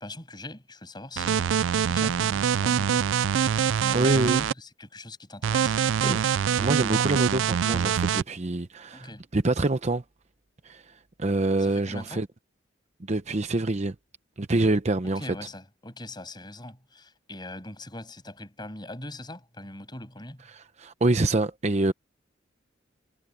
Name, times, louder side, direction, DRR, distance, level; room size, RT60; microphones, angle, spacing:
voice 1, 0.0-3.1 3.5-5.8 8.9-9.2 11.6-12.2 15.2-20.4, left 1 dB, 25° left, 7.0 m, -42 dB
sound 1, 1.2-4.5 5.4-8.2, right 8 dB, 75° right, 0.4 m, -24 dB
voice 2, 3.9-4.4 6.0-10.0 10.6-10.8 11.2-12.3 13.1-13.9 14.4-15.2 20.5-21.9, right 2 dB, 35° right, 0.8 m, -26 dB
head